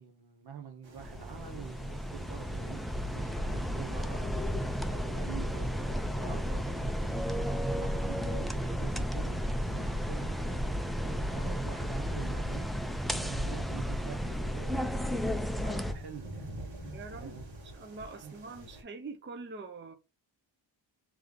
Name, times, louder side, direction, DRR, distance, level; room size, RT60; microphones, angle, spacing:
voice 1, 0.0-6.9 7.1-12.7 13.1-15.3 15.6-16.6 17.2-17.6 18.2-18.3, right 6 dB, 60° right, 1.1 m, -47 dB
sound 1, 0.8-18.8, right 1 dB, 80° right, 1.6 m, -50 dB
sound 2, 1.0-15.9, equal, ahead, 0.3 m, -33 dB
voice 2, 16.9-19.9, right 4 dB, 25° right, 0.7 m, -44 dB
3.4 x 3.3 x 3.7 m
cardioid pair, 105°, 45 cm